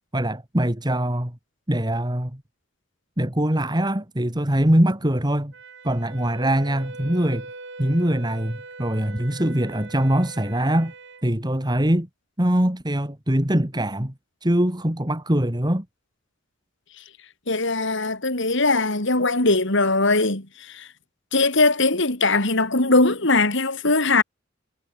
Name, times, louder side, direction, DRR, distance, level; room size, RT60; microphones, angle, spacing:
voice 1, 0.1-1.4 1.7-2.4 3.2-5.5 5.8-7.5 7.8-10.9 11.2-12.1 12.4-14.1 14.4-15.8, right 1 dB, 20° right, 2.8 m, -22 dB
Wind instrument woodwind instrument, 5.5-11.2, right 3 dB, 60° right, 7.9 m, -42 dB
voice 2, 17.5-20.9 21.3-24.2, left 3 dB, 65° left, 4.1 m, -20 dB
head